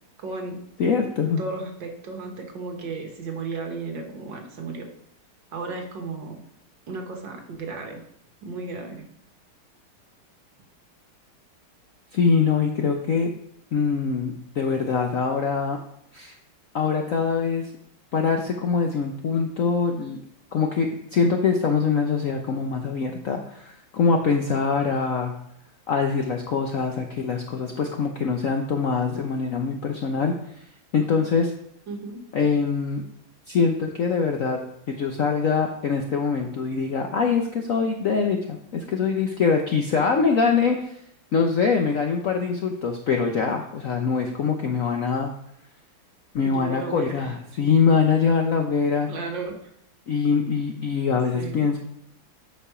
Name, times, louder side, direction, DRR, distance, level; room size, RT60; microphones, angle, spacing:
voice 1, 0.2-0.6 1.4-4.9 5.5-6.4 6.9-8.0 8.4-9.1 31.9-32.2 46.4-47.4 49.1-49.7 51.1-51.8, right 3 dB, 65° right, 3 dB, 2.0 m, -34 dB
voice 2, 0.8-1.4 12.1-13.3 13.7-15.8 16.1-16.3 16.7-17.7 18.1-20.2 20.5-25.3 25.9-30.3 30.9-31.5 32.3-33.0 33.5-34.6 34.9-40.9 41.3-45.3 46.3-49.1 50.1-51.8, left 5 dB, 65° left, 3 dB, 0.8 m, -23 dB
8.3 x 5.5 x 4.9 m, 0.70 s
omnidirectional pair, 2.2 m